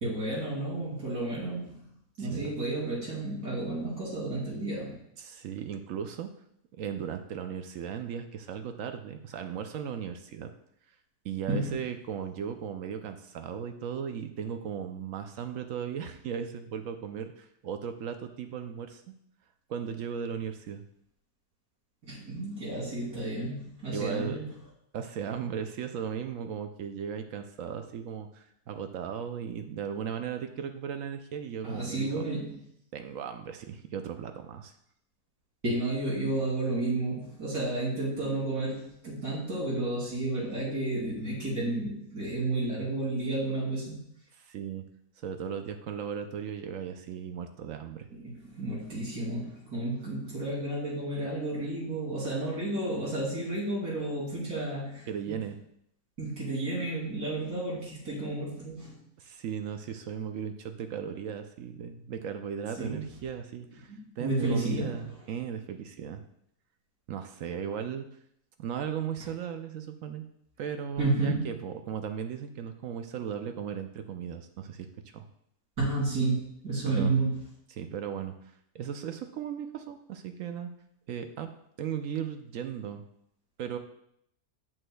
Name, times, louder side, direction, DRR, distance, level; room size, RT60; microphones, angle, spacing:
voice 1, 0.0-1.9 2.2-4.9 11.5-11.7 22.0-24.4 31.6-32.6 35.6-44.0 48.1-55.4 56.2-58.9 62.8-63.0 63.9-65.1 71.0-71.4 75.8-76.4 76.6-77.3, right 2 dB, 85° right, -7 dB, 3.6 m, -31 dB
voice 2, 2.2-2.5 5.2-6.3 6.7-10.5 11.2-19.1 19.7-20.8 23.9-24.4 24.9-32.2 32.9-34.7 44.4-44.8 45.2-48.1 55.1-55.6 59.2-66.2 67.1-68.0 68.6-70.3 70.6-74.9 75.1-75.2 76.9-77.2 77.7-78.3 78.7-80.7 81.1-81.5 81.8-83.0 83.6-83.8, right 8 dB, 70° right, 7 dB, 0.8 m, -36 dB
8.0 x 7.6 x 2.2 m, 0.73 s
omnidirectional pair, 1.6 m